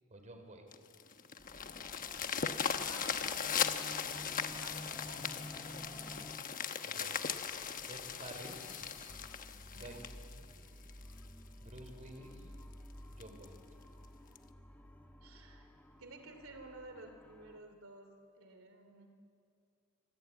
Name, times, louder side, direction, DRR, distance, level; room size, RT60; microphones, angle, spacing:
voice 1, 0.1-0.7 4.8-5.0 6.9-7.2 7.9-8.9 9.7-10.4 10.7-10.8 11.6-12.5 13.1-13.6, right 1 dB, 35° right, 5 dB, 4.0 m, -51 dB
sound 1, 0.7-11.2 11.8-11.9 12.3-12.4 12.7-12.8 13.2-13.5 14.4-14.5, left 7 dB, 40° left, 1.1 m, -38 dB
sound 2, 1.4-17.6, left 1 dB, 10° left, 1.5 m, -53 dB
voice 2, 2.8-6.3 9.5-10.0 15.2-15.7 16.0-18.1 18.3-19.1, right 2 dB, 80° right, 6 dB, 2.8 m, -54 dB
26.5 x 25.5 x 8.7 m, 2.5 s
head